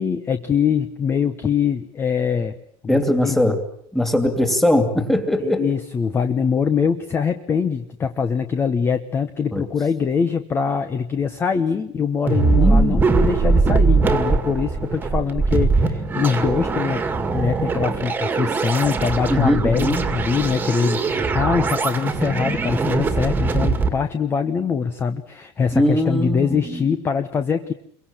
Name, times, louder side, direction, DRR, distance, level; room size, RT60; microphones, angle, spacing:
voice 1, 0.0-2.6 2.8-3.5 5.4-27.7, left 6 dB, 20° left, 9 dB, 1.1 m, -23 dB
voice 2, 2.9-3.6 3.9-5.6 9.5-9.6 12.6-13.1 19.3-20.1 25.7-26.9, left 1 dB, ahead, 7 dB, 2.8 m, -20 dB
sound 1, 12.3-23.9, right 4 dB, 15° right, 2.1 m, -21 dB
28.5 x 23.5 x 7.4 m, 0.66 s
cardioid pair, 180°, 12 cm